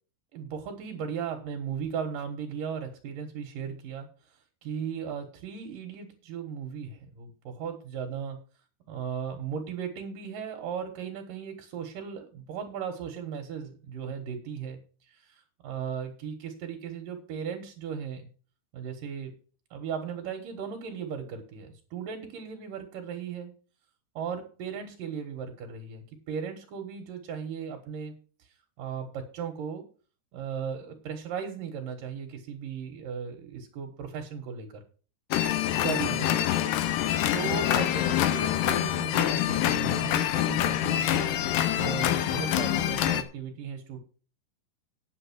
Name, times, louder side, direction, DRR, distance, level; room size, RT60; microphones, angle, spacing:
voice 1, 0.3-4.1 4.6-8.4 8.9-14.8 15.1-18.3 18.7-19.3 19.7-23.5 24.2-28.1 28.8-29.8 30.3-34.8 35.8-36.4 37.3-41.4 41.8-44.0, right 7 dB, 60° right, 3 dB, 2.6 m, -36 dB
sound 1, 35.3-43.2, left 11 dB, 90° left, 1.9 m, -26 dB
9.7 x 7.7 x 6.1 m, 0.38 s
omnidirectional pair, 5.2 m